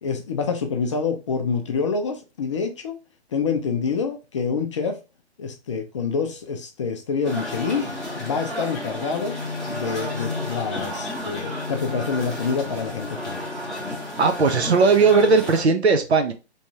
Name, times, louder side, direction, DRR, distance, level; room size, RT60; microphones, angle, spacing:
voice 1, 0.0-3.0 3.3-5.0 5.4-7.9 8.2-9.4 9.7-13.4, left 5 dB, 30° left, 0.4 m, -27 dB
sound 1, 7.2-15.6, left 1 dB, ahead, 0.8 m, -31 dB
voice 2, 14.2-16.3, right 4 dB, 70° right, 0.9 m, -18 dB
3.4 x 3.1 x 2.8 m
figure-of-eight pair, 130°, 33 cm